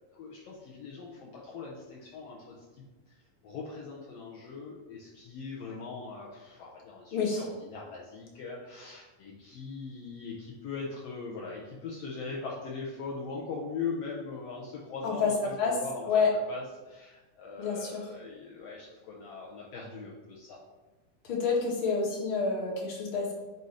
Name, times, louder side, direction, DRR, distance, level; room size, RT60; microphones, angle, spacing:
voice 1, 0.1-2.5 3.4-16.2 16.5-20.6, left 4 dB, 80° left, -4 dB, 1.4 m, -40 dB
voice 2, 7.1-7.4 15.0-15.3 15.6-15.8 16.0-16.3 17.6-18.0 21.2-23.3, left 5 dB, 55° left, -2 dB, 1.5 m, -28 dB
8.2 x 2.7 x 4.9 m, 1.2 s
omnidirectional pair, 3.8 m